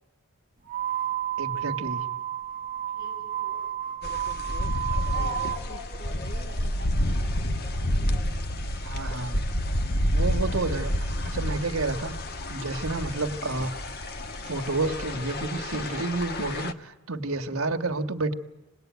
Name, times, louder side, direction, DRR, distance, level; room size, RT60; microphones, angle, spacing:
sound 1, 0.6-5.6, right 10 dB, 40° right, 0.9 m, -31 dB
voice 1, 1.4-2.1 8.8-9.4 10.1-12.1 12.5-13.8 14.5-18.3, right 3 dB, 75° right, 6 dB, 1.5 m, -30 dB
voice 2, 2.9-3.6 3.9-4.0 4.7-8.3 10.4-10.6 17.4-18.0, left 2 dB, 75° left, -1 dB, 6.8 m, -44 dB
sound 2, 4.0-16.7, left 1 dB, 45° left, 1.2 m, -29 dB
26.5 x 19.5 x 9.3 m, 1.0 s
head